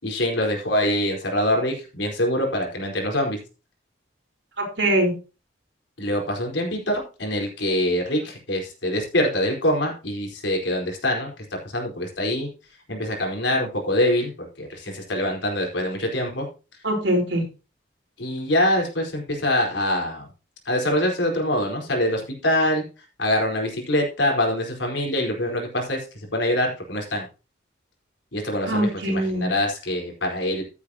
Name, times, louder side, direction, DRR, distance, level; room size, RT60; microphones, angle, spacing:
voice 1, 0.0-3.4 6.0-12.5 12.9-14.3 14.6-16.5 18.2-20.3 20.7-22.8 23.2-26.1 26.3-27.3 28.3-30.6, left 1 dB, 75° left, 1 dB, 4.5 m, -24 dB
voice 2, 4.6-5.1 16.8-17.4 28.7-29.5, right 1 dB, 70° right, 1 dB, 4.5 m, -22 dB
14.5 x 8.6 x 2.9 m, 0.32 s
head